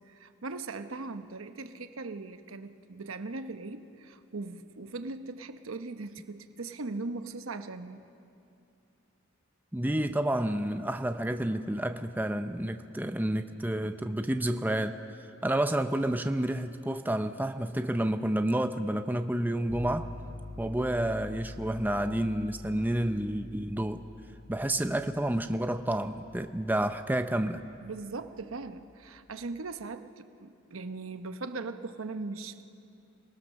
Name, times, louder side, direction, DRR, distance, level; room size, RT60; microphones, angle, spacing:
voice 1, 0.1-8.0 27.8-32.6, right 3 dB, 80° right, 9 dB, 0.9 m, -39 dB
voice 2, 9.7-14.9 15.4-20.1 20.6-24.1 24.5-27.6, right 1 dB, 10° right, 8 dB, 0.6 m, -30 dB
sound 1, 19.7-29.6, left 2 dB, 50° left, 3.5 m, -47 dB
28.5 x 19.5 x 6.4 m, 2.6 s
head